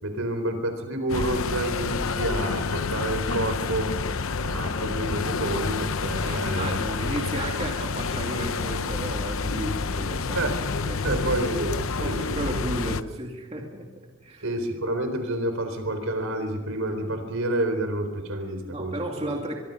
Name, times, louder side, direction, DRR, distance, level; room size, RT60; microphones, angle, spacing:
voice 1, 0.0-3.9 4.4-6.8 10.4-10.6 11.0-12.6 14.4-19.2, right 1 dB, 70° right, 7 dB, 4.0 m, -29 dB
sound 1, 1.1-13.0, left 4 dB, 75° left, 0.8 m, -29 dB
voice 2, 6.3-10.5 10.9-11.2 12.0-14.5 18.7-19.6, right 1 dB, 30° right, 0 dB, 2.4 m, -34 dB
24.5 x 23.5 x 5.4 m, 1.2 s
head